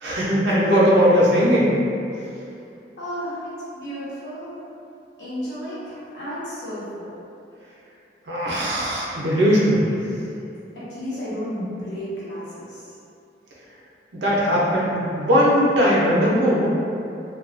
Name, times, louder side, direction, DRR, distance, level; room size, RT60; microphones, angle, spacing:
voice 1, 0.0-1.7 8.3-9.9 14.2-16.7, equal, 80° right, -6 dB, 0.6 m, -19 dB
voice 2, 3.0-4.6 5.2-7.1 10.7-12.9, equal, 80° left, -11 dB, 0.9 m, -33 dB
2.3 x 2.2 x 2.4 m, 2.6 s
head